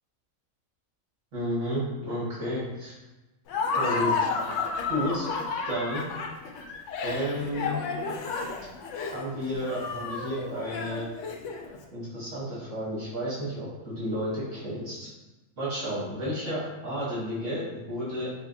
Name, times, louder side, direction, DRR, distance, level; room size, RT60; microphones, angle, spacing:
voice 1, 1.3-2.9 3.8-4.3 4.9-5.3 5.6-6.0 7.0-7.8 9.1-11.1 11.9-15.1 15.6-18.3, equal, 65° right, -9 dB, 1.6 m, -31 dB
Laughter, 3.5-11.8, left 4 dB, 70° left, 0.8 m, -31 dB
6.0 x 2.1 x 2.6 m, 1.1 s
omnidirectional pair, 1.4 m